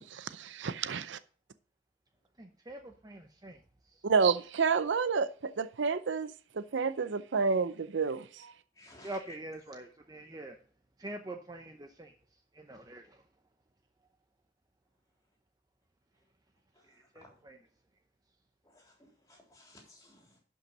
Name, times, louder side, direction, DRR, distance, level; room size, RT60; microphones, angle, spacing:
voice 1, 0.1-1.2 4.0-8.5, right 5 dB, 75° right, 0.6 m, -30 dB
voice 2, 2.4-3.6 9.0-10.6 11.0-12.1 12.5-13.2 16.9-17.6, right 1 dB, 20° right, 0.7 m, -44 dB
voice 3, 8.7-9.4 16.8-17.4 18.6-20.4, left 1 dB, 20° left, 3.7 m, -56 dB
11.5 x 5.6 x 5.2 m
head